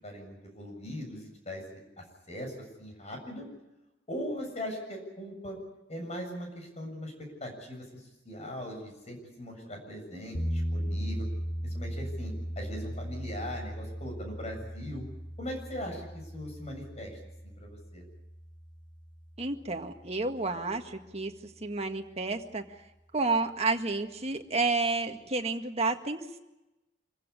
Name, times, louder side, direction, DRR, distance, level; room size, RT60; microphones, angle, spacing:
voice 1, 0.0-1.6 2.0-2.5 2.8-3.5 4.1-5.6 5.9-7.1 7.4-11.3 11.6-15.0 15.4-17.2 17.4-18.0, equal, 40° left, 3 dB, 7.4 m, -40 dB
sound 1, 10.3-20.4, equal, 80° left, 2.6 m, -37 dB
voice 2, 19.4-21.3 21.6-22.6 23.1-26.4, right 3 dB, 35° right, 5 dB, 1.8 m, -30 dB
26.5 x 16.0 x 9.9 m, 0.97 s
head